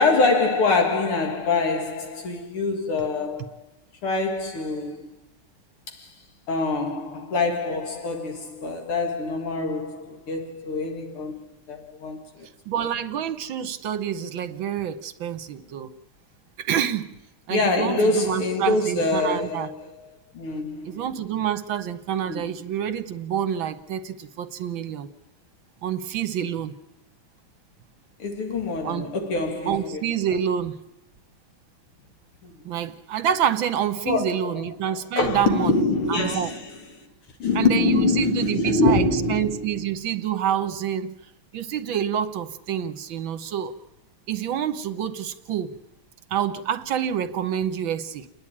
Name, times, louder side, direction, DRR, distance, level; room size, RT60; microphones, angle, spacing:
voice 1, 0.0-3.6 4.0-5.1 5.9-6.1 6.5-12.5 17.5-20.1 20.3-21.1 22.3-22.5 28.2-30.0 32.4-32.5 34.0-34.6 35.2-36.7 37.4-39.8, left 3 dB, 90° left, 2.9 m, -25 dB
voice 2, 12.7-15.9 16.6-17.2 17.5-19.7 20.8-25.1 25.8-26.8 28.8-29.1 29.7-30.8 32.7-35.7 36.1-36.5 37.6-41.2 41.5-43.7 44.3-45.8 46.3-48.3, right 9 dB, 70° right, 1.7 m, -27 dB
29.5 x 10.5 x 8.6 m
omnidirectional pair, 2.3 m